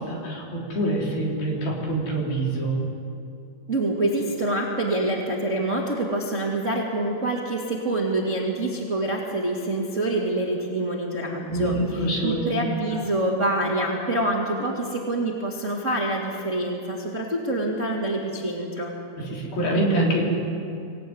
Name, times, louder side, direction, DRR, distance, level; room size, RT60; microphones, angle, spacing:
voice 1, 0.0-2.8 11.5-12.4 12.9-13.0 19.2-20.2, right 1 dB, 60° left, -2 dB, 5.5 m, -25 dB
voice 2, 3.7-11.8 12.2-18.9, right 1 dB, 25° right, -2 dB, 1.8 m, -26 dB
25.5 x 17.5 x 9.5 m, 2.5 s
omnidirectional pair, 5.0 m